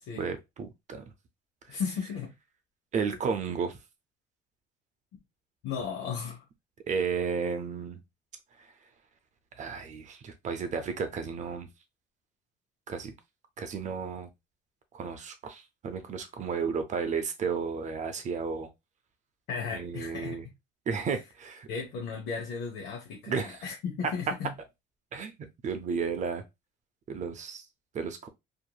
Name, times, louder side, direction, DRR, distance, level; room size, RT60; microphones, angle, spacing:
voice 1, 0.2-1.0 2.9-3.8 6.9-8.0 9.6-11.7 12.9-13.1 13.6-14.3 14.9-18.7 19.7-20.4 20.9-21.7 23.3-23.6 25.1-25.3 25.6-26.4 27.1-27.6 27.9-28.3, right 5 dB, 45° right, 0.6 m, -33 dB
voice 2, 1.7-2.3 5.6-6.5 19.5-20.4 21.7-24.5, left 6 dB, 85° left, 0.8 m, -35 dB
2.9 x 2.6 x 2.3 m
cardioid pair, 110°, 17 cm